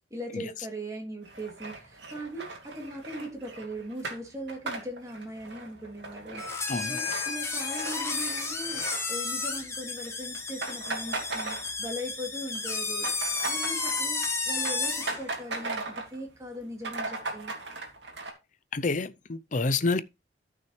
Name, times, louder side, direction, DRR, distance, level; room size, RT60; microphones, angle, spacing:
voice 1, 0.1-8.8 9.1-17.5, equal, 20° right, 2.7 m, -39 dB
sound 1, 1.2-9.6 9.9-10.1 10.3-12.1 12.4-16.2 16.5-16.6 16.8-18.3, right 3 dB, 70° right, 2.6 m, -38 dB
sound 2, 6.4-15.2, left 4 dB, 15° left, 1.6 m, -32 dB
voice 2, 6.7-7.0 18.7-20.0, left 3 dB, 45° left, 0.6 m, -28 dB
14.0 x 6.1 x 3.2 m
head